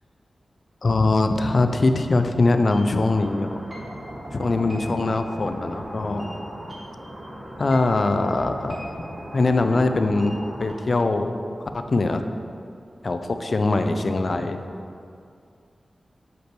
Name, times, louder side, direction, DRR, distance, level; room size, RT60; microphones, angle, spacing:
voice 1, 0.8-3.6 4.3-6.3 7.6-8.8 9.3-10.3 10.6-11.3 11.7-12.2 13.0-14.6, left 2 dB, 55° left, 7 dB, 0.4 m, -22 dB
sound 1, 2.7-10.7, equal, 40° right, 1.2 m, -37 dB
6.6 x 5.0 x 3.1 m, 2.4 s
wide cardioid pair, 70°, 0 cm